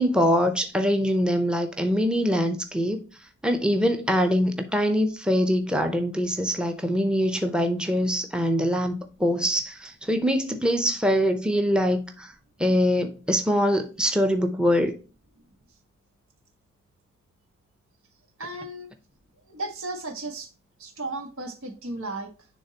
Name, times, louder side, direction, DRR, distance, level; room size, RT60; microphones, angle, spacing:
voice 1, 0.0-3.0 3.4-12.3 12.6-15.0, equal, 5° right, 0.6 m, -23 dB
voice 2, 18.4-18.9 19.5-20.5 20.8-22.3, right 2 dB, 90° right, 1.6 m, -34 dB
10.0 x 3.6 x 2.8 m
head